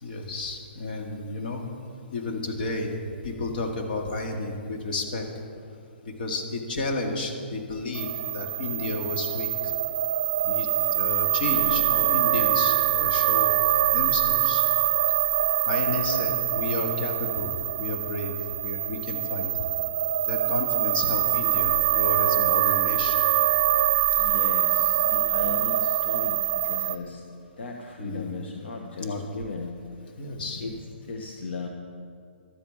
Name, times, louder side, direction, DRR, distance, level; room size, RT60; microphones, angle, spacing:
voice 1, 0.0-1.6 2.1-3.0 3.2-5.3 6.2-9.7 10.4-13.5 13.9-14.6 15.7-18.3 18.6-19.6 20.3-23.2 28.0-28.3 29.0-29.2 30.2-30.6, left 2 dB, 55° left, 2 dB, 2.0 m, -32 dB
sound 1, 7.9-27.0, right 13 dB, 50° right, 0.7 m, -24 dB
voice 2, 24.1-29.8 30.0-31.7, left 3 dB, 75° left, 2 dB, 1.2 m, -37 dB
12.5 x 8.6 x 7.0 m, 2.3 s
hypercardioid pair, 150°, 6 cm